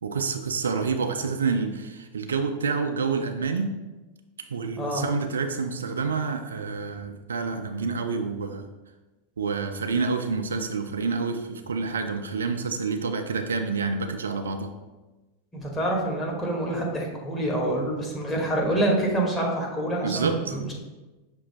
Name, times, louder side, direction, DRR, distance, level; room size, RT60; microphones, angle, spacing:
voice 1, 0.0-3.7 4.5-8.7 9.4-14.7 20.0-20.6, right 4 dB, 70° right, 6 dB, 0.3 m, -28 dB
voice 2, 15.5-20.7, right 1 dB, 15° left, -2 dB, 1.1 m, -26 dB
5.9 x 2.5 x 3.3 m, 1.1 s
figure-of-eight pair, 90°, 0 cm